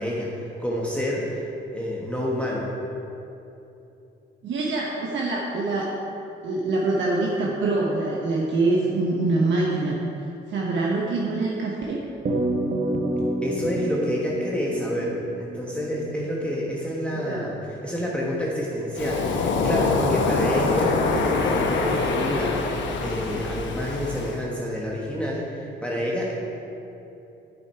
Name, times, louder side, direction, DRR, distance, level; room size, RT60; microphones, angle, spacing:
voice 1, 0.0-1.5 1.7-2.7 13.4-26.3, equal, 5° left, -4 dB, 1.1 m, -28 dB
voice 2, 4.4-5.9 6.4-10.0 10.5-12.0 17.1-17.5, right 2 dB, 70° right, -3 dB, 1.0 m, -24 dB
sound 1, 12.2-16.9, right 1 dB, 40° right, 0.9 m, -29 dB
Waves surf, 19.0-24.4, left 3 dB, 70° left, 0.9 m, -24 dB
8.2 x 7.0 x 4.5 m, 2.9 s
cardioid pair, 90°, 20 cm